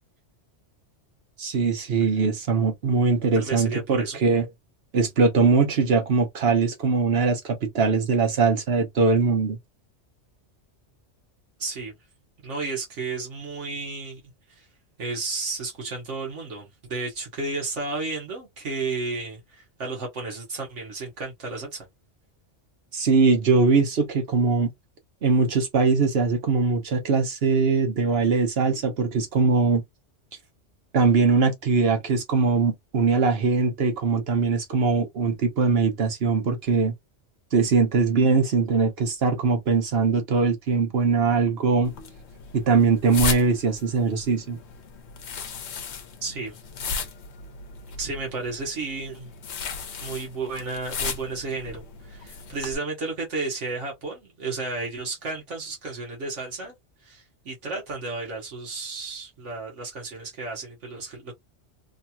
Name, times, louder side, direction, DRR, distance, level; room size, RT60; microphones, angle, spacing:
voice 1, 1.4-4.5 4.9-9.6 22.9-24.7 25.2-29.8 30.9-36.9 37.5-41.9 42.5-44.6, right 4 dB, 60° right, 1.2 m, -21 dB
voice 2, 3.3-4.2 11.6-11.9 12.4-14.2 14.5-14.7 15.0-21.9 46.2-46.6 48.0-49.3 50.0-56.7 57.0-61.4, right 3 dB, 75° right, 1.4 m, -32 dB
sound 1, 41.8-52.8, left 4 dB, 70° left, 1.0 m, -35 dB
3.2 x 2.8 x 2.2 m
omnidirectional pair, 1.2 m